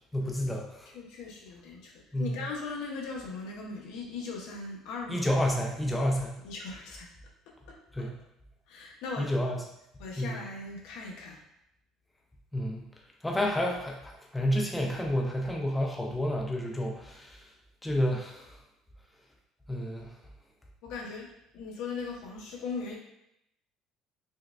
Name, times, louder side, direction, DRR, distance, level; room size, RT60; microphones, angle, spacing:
voice 1, 0.1-0.9 2.1-2.4 5.1-6.4 7.9-8.1 9.2-9.6 10.2-10.3 12.5-12.8 13.2-17.4 17.8-18.6 19.7-20.1, equal, 5° left, -1 dB, 0.4 m, -30 dB
voice 2, 0.9-1.9 2.2-5.3 6.0-6.1 6.4-7.1 7.5-8.1 8.7-9.3 10.0-11.4 20.8-21.3 21.5-23.0, left 4 dB, 75° left, -1 dB, 0.8 m, -39 dB
4.5 x 2.2 x 2.3 m, 0.79 s
cardioid pair, 165°, 0 cm